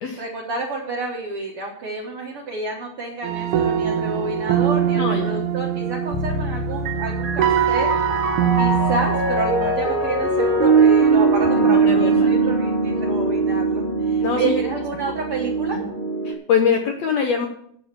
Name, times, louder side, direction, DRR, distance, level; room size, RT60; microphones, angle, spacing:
voice 1, 0.2-7.9 8.5-15.8, right 3 dB, 60° right, -1 dB, 1.5 m, -29 dB
sound 1, 3.2-9.9, right 9 dB, 75° right, 1.9 m, -23 dB
voice 2, 4.9-5.4 11.5-12.4 14.2-14.6 15.7-15.9 16.2-17.5, left 7 dB, 70° left, 3 dB, 1.7 m, -23 dB
Bass guitar, 6.1-15.9, left 3 dB, 85° left, 2.8 m, -35 dB
Piano, 6.7-16.3, right 4 dB, 20° right, 1.5 m, -21 dB
8.9 x 7.1 x 7.2 m, 0.68 s
omnidirectional pair, 4.1 m